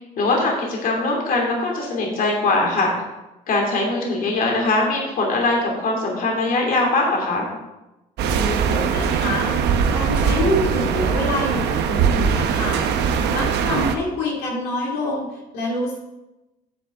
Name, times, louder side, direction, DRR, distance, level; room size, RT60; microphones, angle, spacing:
voice 1, 0.2-2.9 3.5-7.5, left 2 dB, 55° left, -1 dB, 2.8 m, -21 dB
sound 1, 8.2-14.0, right 6 dB, 80° right, 0.9 m, -21 dB
voice 2, 8.3-9.6 9.9-12.9 13.3-16.0, left 1 dB, 85° left, -3 dB, 2.5 m, -26 dB
9.6 x 7.6 x 3.8 m, 0.98 s
cardioid pair, 110°, 17 cm